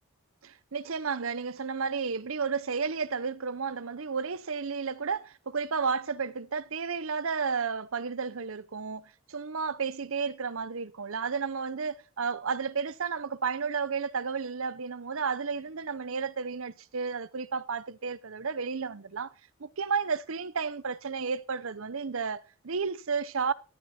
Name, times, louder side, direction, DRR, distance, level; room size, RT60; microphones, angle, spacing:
voice 1, 0.4-19.3 19.6-23.5, right 5 dB, 75° right, 0.7 m, -32 dB
14.0 x 12.5 x 4.3 m
head